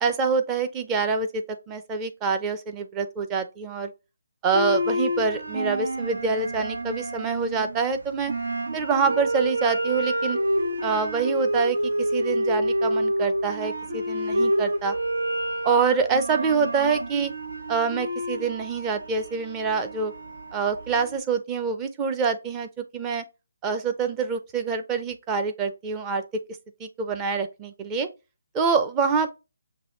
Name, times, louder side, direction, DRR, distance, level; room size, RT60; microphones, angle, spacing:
voice 1, 0.0-3.9 4.4-8.3 8.7-10.4 10.8-14.9 15.6-17.3 17.7-20.1 20.5-23.2 23.6-26.2 26.8-28.1 28.5-29.4, right 5 dB, 15° right, 0.6 m, -26 dB
sound 1, 4.5-21.2, equal, 80° right, 1.4 m, -28 dB
6.0 x 2.7 x 3.0 m
hypercardioid pair, 160°, 0 cm